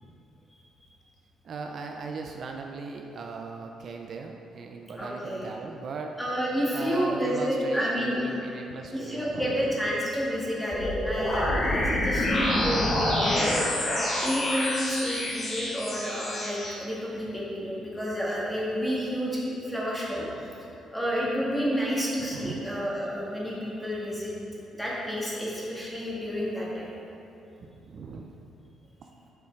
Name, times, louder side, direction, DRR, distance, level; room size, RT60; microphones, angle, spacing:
voice 1, 1.4-6.1 6.7-9.5 13.2-13.4 22.2-22.6 27.6-28.3 29.0-29.1, right 4 dB, 50° right, 3 dB, 0.4 m, -38 dB
voice 2, 5.0-5.5 6.2-8.5 8.9-13.7 14.2-20.3 20.9-24.3 24.8-26.9, equal, 5° left, -6 dB, 1.8 m, -30 dB
sound 1, 10.7-16.7, left 1 dB, 35° left, 1.5 m, -27 dB
7.0 x 5.7 x 4.5 m, 2.8 s
cardioid pair, 125°, 0 cm